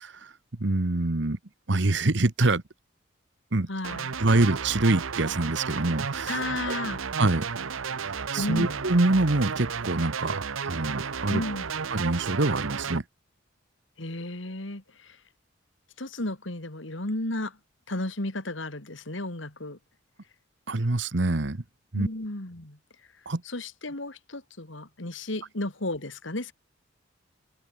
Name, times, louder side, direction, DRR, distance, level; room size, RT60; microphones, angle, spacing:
voice 1, 0.6-1.4 1.7-2.6 3.5-3.7 4.2-6.4 6.7-6.8 7.2-7.5 8.3-11.4 11.9-13.0 20.7-21.6 21.9-22.1 23.3-23.4, right 2 dB, 60° right, 1.2 m, -25 dB
voice 2, 3.7-4.2 6.3-7.0 8.4-8.8 11.3-11.7 14.0-15.2 16.0-17.6 17.9-19.8 21.9-22.8 23.4-26.5, left 2 dB, 70° left, 2.7 m, -33 dB
sound 1, 3.8-13.0, right 6 dB, 90° right, 0.8 m, -33 dB
head